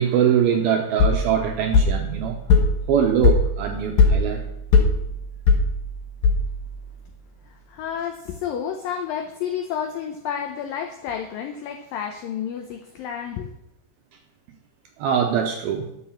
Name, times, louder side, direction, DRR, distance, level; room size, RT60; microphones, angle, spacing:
voice 1, 0.0-2.4 2.9-4.4 15.0-15.9, right 8 dB, 75° right, 3 dB, 2.4 m, -22 dB
sound 1, 1.0-6.8, left 4 dB, 65° left, 2.7 m, -20 dB
voice 2, 7.5-13.5, left 8 dB, 85° left, 5 dB, 2.0 m, -30 dB
10.5 x 7.3 x 7.2 m, 0.81 s
omnidirectional pair, 5.1 m